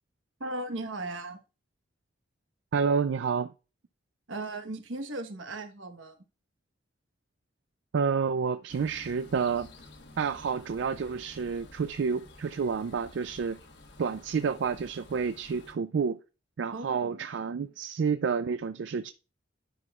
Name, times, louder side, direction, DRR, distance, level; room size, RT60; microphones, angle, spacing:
voice 1, 0.4-1.4 4.3-6.2 16.7-17.2, right 2 dB, 85° right, 1.1 m, -37 dB
voice 2, 2.7-3.5 7.9-9.7 10.2-13.6 14.0-16.2 16.6-19.1, right 6 dB, 70° right, 0.4 m, -29 dB
sound 1, 8.7-15.7, left 2 dB, 65° left, 1.2 m, -52 dB
10.5 x 6.0 x 2.4 m
head